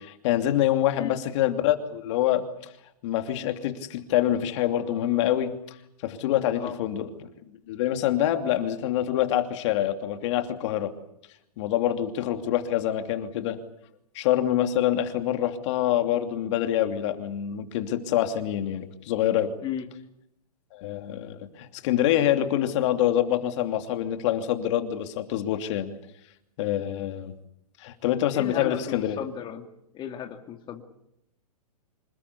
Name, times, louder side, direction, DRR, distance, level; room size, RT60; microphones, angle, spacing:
voice 1, 0.0-2.4 3.0-5.8 6.0-7.3 7.7-10.9 11.6-13.6 14.1-19.5 20.7-25.9 26.6-27.3 27.8-29.2, left 12 dB, 50° left, 7 dB, 2.8 m, -26 dB
voice 2, 0.9-1.3 6.5-6.8 19.6-19.9 28.3-29.6 29.9-30.8, left 9 dB, 25° left, 4 dB, 2.3 m, -35 dB
26.5 x 20.5 x 8.4 m, 0.78 s
hypercardioid pair, 135°, 20 cm